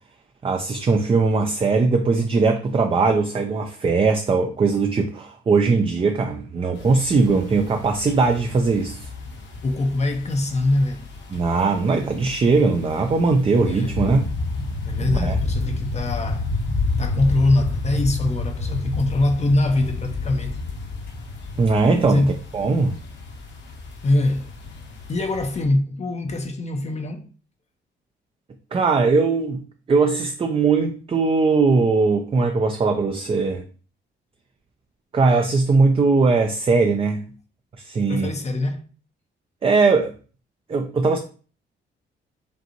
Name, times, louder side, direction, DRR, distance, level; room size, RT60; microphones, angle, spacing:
voice 1, 0.4-9.1 11.3-14.2 15.1-15.3 21.6-22.2 22.5-23.0 28.7-29.6 29.9-33.6 35.1-37.3 37.8-38.3 39.6-40.1 40.7-41.2, right 4 dB, 25° right, 0.5 m, -20 dB
sound 1, 6.7-25.6, left 3 dB, 65° left, 1.1 m, -30 dB
voice 2, 9.6-11.1 13.6-14.0 14.8-16.5 17.0-20.6 22.1-22.4 24.0-24.5 25.1-27.3 38.1-38.9, left 2 dB, 35° left, 0.6 m, -23 dB
5.2 x 2.6 x 2.9 m
cardioid pair, 90°, 20 cm